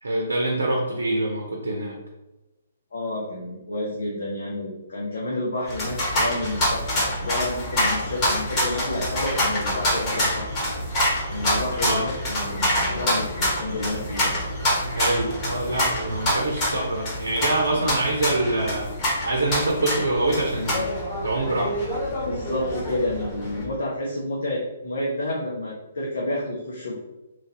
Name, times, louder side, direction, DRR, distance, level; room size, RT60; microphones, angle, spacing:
voice 1, 0.0-2.0 11.8-12.0 14.8-18.9 19.2-20.8 21.2-21.8, right 2 dB, 80° right, 1 dB, 0.5 m, -25 dB
voice 2, 2.9-10.5 11.3-14.3 22.3-27.0, left 1 dB, 70° left, -3 dB, 0.7 m, -30 dB
sound 1, 5.7-23.6, equal, 30° left, 1.3 m, -26 dB
3.0 x 2.5 x 2.7 m, 1.0 s
figure-of-eight pair, 135°, 0 cm